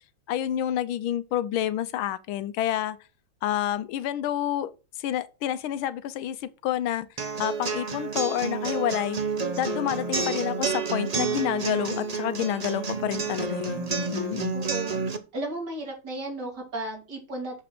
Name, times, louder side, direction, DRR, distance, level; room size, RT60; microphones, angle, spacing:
voice 1, 0.3-3.0 3.4-4.7 5.0-7.1 7.4-9.2 9.6-14.6, left 11 dB, 90° left, 1.6 m, -29 dB
sound 1, 7.2-15.2, right 4 dB, 90° right, 0.3 m, -30 dB
voice 2, 14.5-15.0 15.3-17.6, right 1 dB, 55° right, 3.6 m, -34 dB
6.9 x 6.0 x 6.0 m
omnidirectional pair, 2.2 m